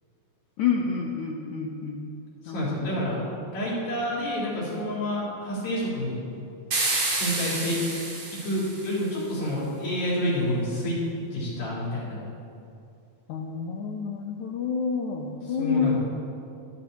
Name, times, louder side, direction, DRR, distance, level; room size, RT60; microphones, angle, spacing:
voice 1, 0.6-2.0 2.5-2.9 13.3-16.0, left 6 dB, 80° left, 1 dB, 1.7 m, -28 dB
voice 2, 2.4-3.2 3.5-6.2 7.2-7.8 8.4-11.0 11.3-12.2 15.6-16.0, equal, 65° left, -7 dB, 5.9 m, -28 dB
sound 1, 6.7-9.1, right 2 dB, 40° right, 3.6 m, -29 dB
24.0 x 13.0 x 3.0 m, 2.5 s
omnidirectional pair, 4.6 m